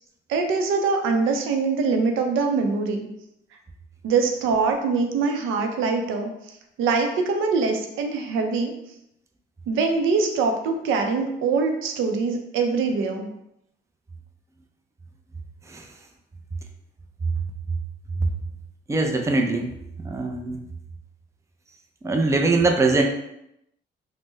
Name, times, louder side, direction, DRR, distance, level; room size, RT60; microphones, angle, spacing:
voice 1, 0.3-3.1 4.0-6.3 6.8-8.7 9.7-13.3, right 4 dB, 85° right, 4 dB, 0.5 m, -23 dB
voice 2, 18.9-19.7 20.0-20.6 22.0-23.0, right 3 dB, 15° right, 3 dB, 0.4 m, -22 dB
3.3 x 2.1 x 3.1 m, 0.80 s
cardioid pair, 90°, 20 cm